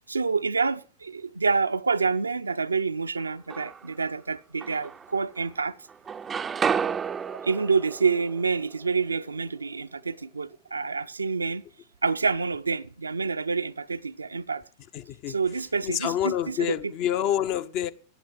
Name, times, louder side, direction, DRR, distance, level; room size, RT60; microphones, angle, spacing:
voice 1, 0.1-5.8 7.3-11.6 12.0-14.6 15.3-16.8, right 5 dB, 80° right, 0.5 m, -27 dB
sound 1, 3.2-4.0 4.6-5.6 5.9-9.8, right 6 dB, 20° right, 0.4 m, -32 dB
voice 2, 14.9-15.3 15.8-17.9, left 11 dB, 40° left, 0.7 m, -27 dB
14.5 x 8.9 x 4.7 m
figure-of-eight pair, 90°, 0 cm